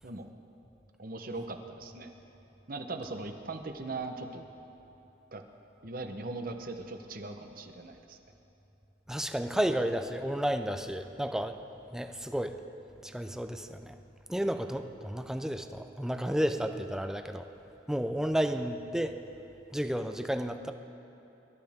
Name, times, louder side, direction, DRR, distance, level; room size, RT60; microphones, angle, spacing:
voice 1, 1.0-2.1 2.7-4.4 5.3-5.4 5.8-8.2, right 3 dB, 55° right, 6 dB, 1.0 m, -39 dB
voice 2, 9.1-11.6 11.9-12.5 13.0-13.9 14.3-17.5 17.9-19.2 19.7-20.7, equal, 5° right, 7 dB, 0.5 m, -32 dB
23.5 x 13.0 x 3.6 m, 2.9 s
head